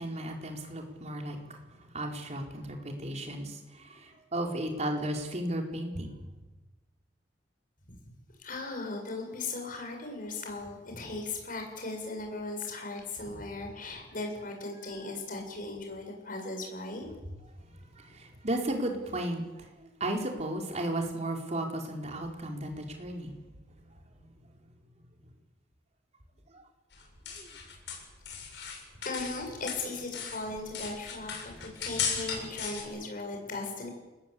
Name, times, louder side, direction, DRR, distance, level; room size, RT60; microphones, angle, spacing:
voice 1, 0.0-6.2 17.7-23.3 26.5-26.6 27.4-27.5 31.8-31.9, right 1 dB, 40° right, 2 dB, 4.5 m, -35 dB
voice 2, 8.4-17.2 29.0-33.9, left 3 dB, 50° left, 3 dB, 7.3 m, -38 dB
sound 1, 26.9-29.4 29.7-32.8, left 6 dB, 70° left, 8.0 m, -36 dB
29.0 x 20.5 x 8.6 m, 1.2 s
head